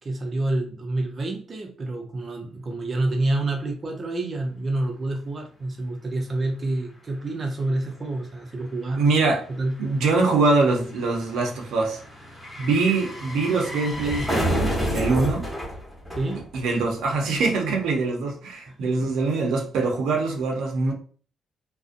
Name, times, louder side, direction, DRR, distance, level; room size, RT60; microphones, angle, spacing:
voice 1, 0.0-9.0 9.5-9.8 16.1-16.4 18.7-19.1, right 2 dB, 40° right, 0.5 m, -28 dB
sound 1, 6.4-6.5 6.6-17.0 17.3-17.4, equal, 15° left, 0.9 m, -31 dB
voice 2, 9.0-9.4 9.8-12.0 12.6-15.5 16.5-20.9, right 3 dB, 85° right, 0.6 m, -23 dB
2.5 x 2.0 x 2.5 m
cardioid pair, 90°, 0 cm